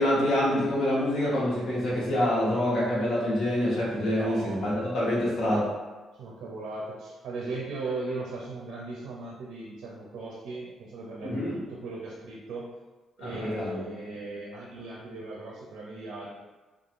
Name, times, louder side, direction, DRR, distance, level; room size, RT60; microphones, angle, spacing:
voice 1, 0.0-5.7 11.2-11.6 13.2-13.8, left 1 dB, 70° left, -6 dB, 1.0 m, -26 dB
voice 2, 3.9-4.9 6.1-12.7 13.2-16.3, right 3 dB, 85° right, -3 dB, 0.4 m, -38 dB
2.9 x 2.3 x 2.5 m, 1.2 s
cardioid pair, 90°, 0 cm